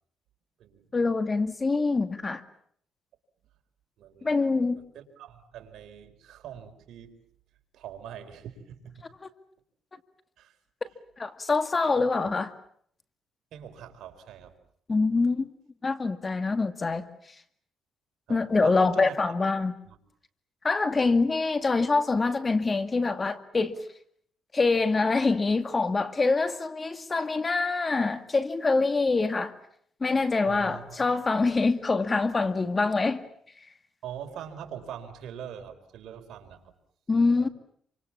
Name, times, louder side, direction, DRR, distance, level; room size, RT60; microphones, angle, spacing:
voice 1, 0.9-2.4 4.2-4.8 10.8-10.9 11.2-12.5 14.9-15.5 15.8-17.1 18.3-19.7 20.6-23.8 24.5-29.5 30.0-33.2 37.1-37.5, left 3 dB, 30° left, 2.2 m, -25 dB
voice 2, 4.0-4.4 4.7-7.2 7.7-9.1 10.4-10.5 12.0-12.3 13.5-14.6 18.3-19.1 19.8-20.0 30.4-31.1 34.0-36.7 37.4-37.5, right 9 dB, 75° right, 4.2 m, -43 dB
28.0 x 26.0 x 7.3 m
cardioid pair, 90°, 0 cm